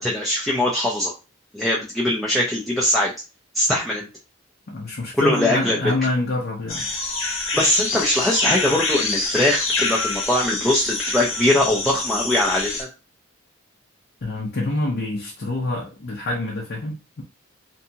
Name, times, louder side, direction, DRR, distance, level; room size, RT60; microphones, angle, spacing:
voice 1, 0.0-1.1 1.5-3.1 3.5-4.1 5.2-5.8 7.5-12.9, left 1 dB, ahead, 0.5 m, -21 dB
voice 2, 4.7-6.9 14.2-17.2, left 2 dB, 50° left, 0.6 m, -26 dB
sound 1, 6.7-12.8, left 3 dB, 80° left, 0.9 m, -26 dB
2.7 x 2.3 x 2.7 m
head